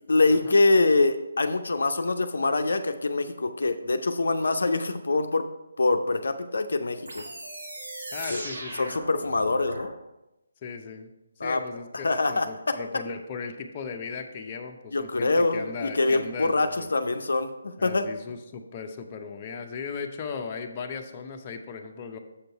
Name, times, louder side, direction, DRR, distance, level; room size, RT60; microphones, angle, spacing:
voice 1, 0.1-5.5 5.8-7.2 8.3-8.4 8.8-9.9 11.4-11.6 12.0-12.8 14.9-18.1, left 3 dB, 70° left, 8 dB, 0.5 m, -24 dB
sound 1, 7.1-9.9, right 1 dB, 75° right, 2.3 m, -38 dB
voice 2, 8.1-8.9 10.6-11.1 11.4-16.9 17.8-22.2, left 5 dB, 30° left, 3 dB, 0.6 m, -37 dB
7.1 x 5.3 x 4.6 m, 0.95 s
figure-of-eight pair, 150°, 0 cm